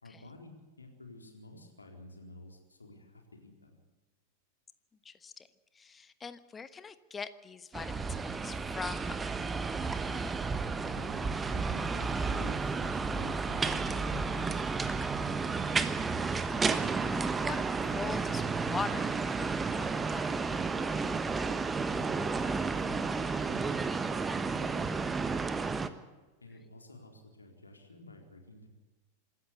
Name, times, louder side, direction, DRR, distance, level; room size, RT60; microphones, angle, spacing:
voice 1, 0.0-3.8 10.9-14.6 21.9-25.7 26.4-28.7, left 2 dB, 80° left, 3 dB, 4.2 m, -51 dB
voice 2, 5.0-5.5 5.7-9.2 15.5-15.6 16.6-17.6 17.9-20.4, left 5 dB, 15° left, 14 dB, 1.3 m, -42 dB
sound 1, 7.7-25.9, right 4 dB, 15° right, 1.3 m, -32 dB
26.0 x 13.5 x 8.3 m, 1.2 s
figure-of-eight pair, 90°, 0 cm